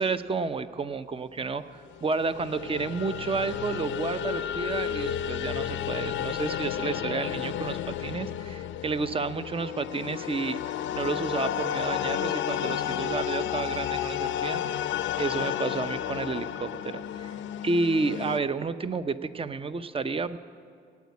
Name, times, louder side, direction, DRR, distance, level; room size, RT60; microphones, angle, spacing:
voice 1, 0.0-10.6 10.9-14.6 15.2-17.3 17.6-20.4, right 4 dB, 30° right, 12 dB, 0.7 m, -31 dB
sound 1, 1.9-18.4, left 10 dB, 75° left, 0.6 m, -32 dB
17.5 x 8.4 x 9.5 m, 2.3 s
cardioid pair, 90°, 20 cm